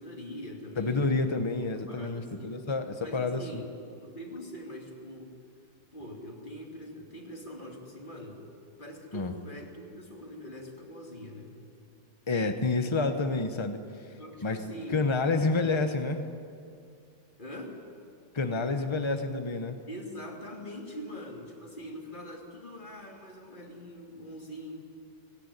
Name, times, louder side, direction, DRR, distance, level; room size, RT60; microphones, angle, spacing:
voice 1, 0.0-1.4 1.7-2.7 3.0-5.3 5.9-8.5 8.8-11.5 14.2-15.1 15.5-15.9 17.4-17.8 19.9-24.8, equal, 25° left, 0 dB, 2.7 m, -43 dB
voice 2, 0.8-3.6 9.1-9.3 12.3-13.8 14.4-14.6 14.9-16.2 18.3-19.8, left 3 dB, 50° left, 6 dB, 0.3 m, -28 dB
18.0 x 17.5 x 9.8 m, 2.4 s
omnidirectional pair, 2.1 m